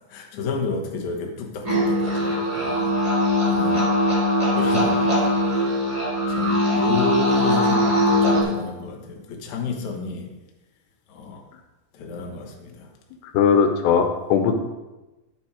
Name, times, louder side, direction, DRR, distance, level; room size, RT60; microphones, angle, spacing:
voice 1, 0.1-3.0 3.5-3.9 4.5-5.7 6.3-10.3 11.1-11.5 11.9-12.9, left 4 dB, 60° left, 1 dB, 2.2 m, -31 dB
sound 1, 1.6-8.4, left 1 dB, 10° right, 1.9 m, -21 dB
voice 2, 13.3-14.5, left 7 dB, 85° left, 6 dB, 3.0 m, -19 dB
10.5 x 7.2 x 4.9 m, 1.1 s
omnidirectional pair, 4.8 m